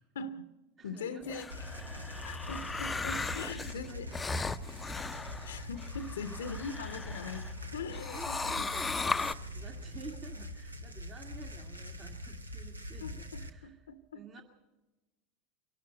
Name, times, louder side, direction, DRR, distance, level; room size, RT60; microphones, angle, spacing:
voice 1, 0.1-0.5 0.8-1.7 2.2-4.1 5.4-8.7 13.0-14.2, left 4 dB, 75° left, 12 dB, 0.7 m, -42 dB
voice 2, 0.8-1.5 2.1-2.3 3.4-4.2 6.2-6.6 8.1-13.8 14.1-14.4, right 5 dB, 35° right, 2 dB, 1.9 m, -51 dB
sound 1, 1.2-7.5 7.9-9.3, left 4 dB, 15° left, 0.6 m, -37 dB
sound 2, 1.5-13.5, left 1 dB, 90° right, 1.1 m, -43 dB
23.5 x 12.0 x 9.3 m, 1.1 s
figure-of-eight pair, 80°, 0 cm